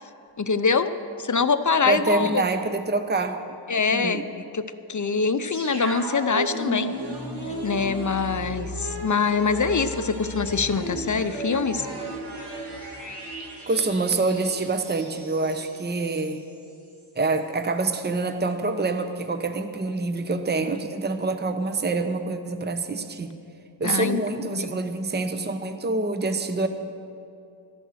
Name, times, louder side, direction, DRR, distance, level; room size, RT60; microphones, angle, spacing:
voice 1, 0.4-0.9 1.2-2.4 3.7-6.9 7.6-11.9 23.8-24.2 24.5-24.8, left 5 dB, 40° left, 11 dB, 0.7 m, -24 dB
voice 2, 1.9-3.6 3.9-4.3 13.7-16.5 17.2-23.4 23.8-26.7, right 3 dB, 20° right, 8 dB, 0.8 m, -26 dB
sound 1, 5.5-16.3 16.6-16.7, right 1 dB, 55° right, 2.3 m, -34 dB
13.5 x 11.0 x 6.3 m, 2.6 s
wide cardioid pair, 55°, 48 cm